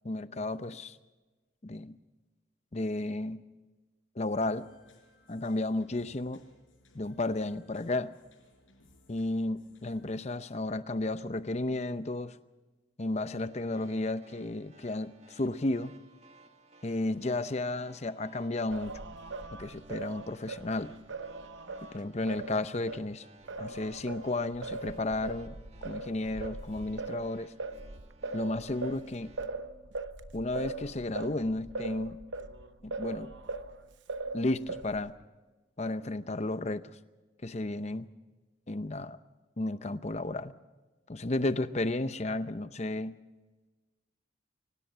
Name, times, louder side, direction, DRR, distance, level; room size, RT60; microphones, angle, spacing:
voice 1, 0.0-1.0 1.6-1.9 2.7-3.4 4.2-4.7 5.3-6.4 6.9-8.1 9.1-12.4 13.0-15.9 16.8-18.9 19.5-20.9 21.9-23.2 23.6-25.6 25.8-27.5 28.3-29.3 30.3-32.2 32.8-33.3 34.3-35.1 35.8-36.8 37.4-38.1 38.7-39.2 39.6-40.5 41.1-43.1, left 2 dB, 35° left, 12 dB, 0.7 m, -33 dB
sound 1, 4.3-10.2, left 2 dB, 90° left, 5.9 m, -63 dB
sound 2, 13.4-29.4, right 2 dB, 35° right, 1.6 m, -59 dB
Singing, 18.7-23.1 23.5-33.8 34.1-35.1, right 3 dB, 70° right, 1.0 m, -40 dB
24.5 x 18.5 x 5.7 m, 1.2 s
head